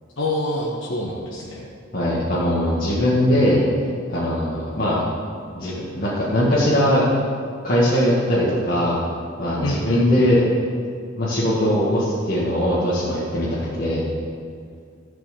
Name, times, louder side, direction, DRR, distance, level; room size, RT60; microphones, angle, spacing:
voice 1, 0.2-1.7 9.6-10.2, left 1 dB, 75° left, -5 dB, 1.4 m, -26 dB
voice 2, 1.9-3.6 4.1-5.0 5.5-7.1 7.6-9.0 9.4-10.5 11.2-14.0, equal, 50° left, -9 dB, 2.0 m, -20 dB
13.0 x 6.1 x 7.5 m, 2.2 s
head